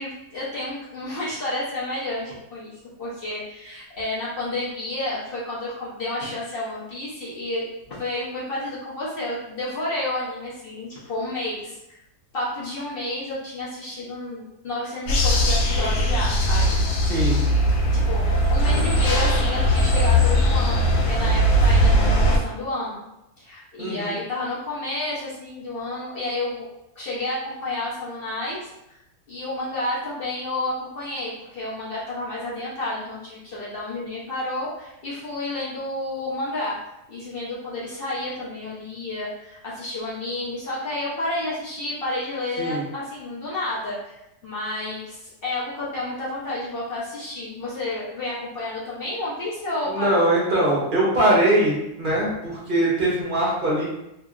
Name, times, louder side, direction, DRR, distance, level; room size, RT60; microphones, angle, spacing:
voice 1, 0.0-12.0 12.3-16.8 17.7-23.1 23.4-26.7 27.0-29.0 29.3-36.8 37.1-50.2, left 2 dB, 55° left, -7 dB, 0.6 m, -30 dB
sound 1, 15.1-22.4, equal, 80° left, 1.2 m, -19 dB
voice 2, 17.1-17.4 23.8-24.1 42.6-42.8 49.9-53.8, right 1 dB, 45° right, -6 dB, 0.7 m, -21 dB
2.8 x 2.6 x 2.3 m, 0.87 s
omnidirectional pair, 1.7 m